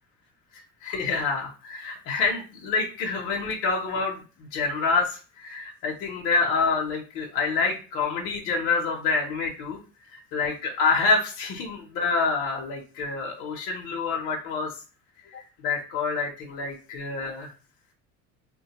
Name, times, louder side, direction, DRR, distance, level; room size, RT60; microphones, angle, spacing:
voice 1, 0.8-9.8 10.1-14.8 15.3-17.5, left 4 dB, 45° left, -1 dB, 0.6 m, -27 dB
3.5 x 2.2 x 2.8 m, 0.35 s
cardioid pair, 160°, 30 cm